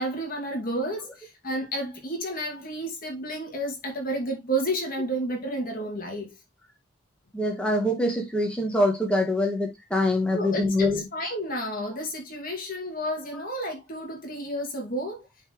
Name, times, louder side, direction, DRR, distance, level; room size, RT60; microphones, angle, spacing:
voice 1, 0.0-6.3 10.3-15.2, right 1 dB, 40° left, 2.3 m, -31 dB
voice 2, 7.3-11.1 13.3-13.4, left 1 dB, 5° left, 1.9 m, -24 dB
9.0 x 4.3 x 3.1 m
head